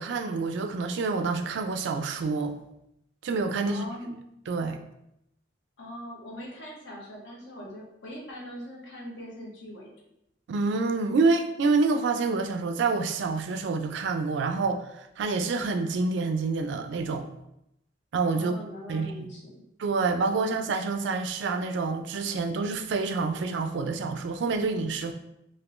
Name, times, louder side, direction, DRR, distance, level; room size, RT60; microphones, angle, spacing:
voice 1, 0.0-2.6 3.2-3.9 4.5-4.8 10.5-17.3 18.1-18.5 18.9-19.3 19.8-25.1, right 4 dB, 65° right, 6 dB, 0.3 m, -27 dB
voice 2, 3.6-4.2 5.8-9.9 18.3-19.7 20.3-20.5, equal, 65° left, -2 dB, 0.9 m, -41 dB
3.5 x 2.6 x 2.4 m, 0.82 s
head